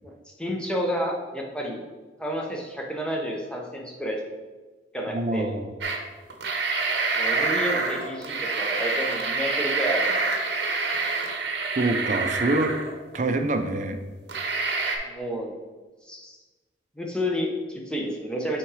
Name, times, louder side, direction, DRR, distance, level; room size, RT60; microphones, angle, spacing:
voice 1, 0.4-1.9 2.2-4.2 4.9-5.6 7.1-10.2 15.0-15.6 16.0-16.4 17.0-18.6, equal, 5° left, 0 dB, 0.7 m, -30 dB
voice 2, 5.1-5.7 11.8-12.8 13.1-14.0, right 2 dB, 40° right, 7 dB, 0.5 m, -25 dB
sound 1, 5.8-6.0 6.3-13.2 13.7-13.8 14.3-15.0, right 3 dB, 70° right, 0.8 m, -27 dB
5.8 x 3.7 x 4.8 m, 1.3 s
head